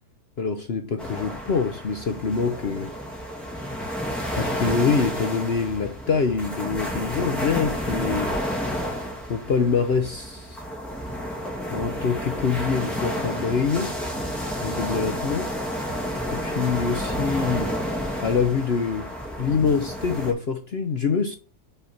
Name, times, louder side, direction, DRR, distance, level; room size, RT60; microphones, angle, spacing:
voice 1, 0.4-2.9 4.4-8.3 9.3-10.6 11.7-13.9 14.6-15.5 16.3-17.8 18.2-19.1 19.4-21.4, left 5 dB, 55° left, 0.7 m, -25 dB
sound 1, 1.0-20.3, equal, ahead, 2.1 m, -30 dB
5.7 x 4.1 x 5.9 m
omnidirectional pair, 1.8 m